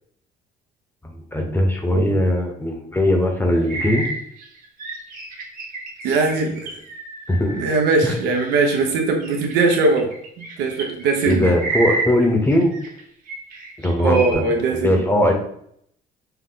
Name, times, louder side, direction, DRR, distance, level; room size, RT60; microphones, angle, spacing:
voice 1, 1.0-4.1 7.3-7.6 8.0-8.1 11.2-12.7 13.8-14.4 14.7-15.3, left 1 dB, 15° left, 3 dB, 0.9 m, -19 dB
sound 1, 3.7-8.8 9.2-13.0 13.3-14.3, right 3 dB, 50° right, 1.1 m, -30 dB
voice 2, 6.0-6.8 7.5-10.1 10.6-11.5 14.0-15.0, right 3 dB, 90° right, 2 dB, 1.0 m, -20 dB
5.6 x 2.1 x 3.8 m, 0.69 s
cardioid pair, 110°, 17 cm